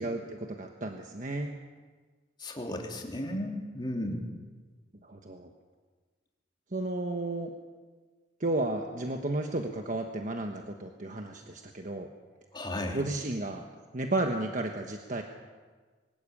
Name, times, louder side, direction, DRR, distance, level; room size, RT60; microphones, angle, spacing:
voice 1, 0.0-1.5 5.0-5.5 6.7-7.5 8.4-12.1 12.9-13.7 13.9-15.2, right 2 dB, 45° right, 3 dB, 1.3 m, -33 dB
voice 2, 2.4-4.4 12.5-13.0, left 1 dB, 25° left, 1 dB, 2.8 m, -34 dB
23.0 x 13.0 x 8.6 m, 1.4 s
head